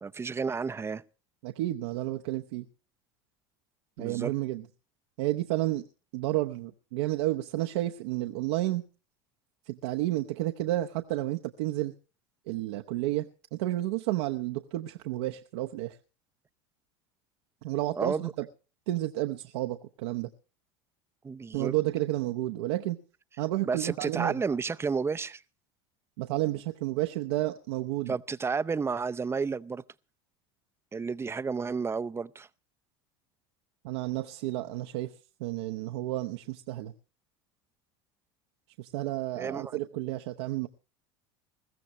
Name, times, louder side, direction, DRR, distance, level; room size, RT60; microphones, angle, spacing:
voice 1, 0.0-1.0 4.0-4.3 18.0-18.3 21.2-21.7 23.7-25.4 28.1-29.8 30.9-32.5 39.4-39.7, right 5 dB, 20° right, 0.6 m, -31 dB
voice 2, 1.4-2.7 4.0-4.7 5.2-5.8 6.1-8.8 9.7-11.9 12.5-13.2 13.5-16.0 17.6-18.5 18.9-20.3 21.5-23.0 23.4-24.4 26.2-28.1 33.8-35.1 35.4-36.9 38.8-40.7, right 16 dB, 80° right, 0.9 m, -31 dB
21.0 x 15.0 x 3.1 m
supercardioid pair, 95°, 14 cm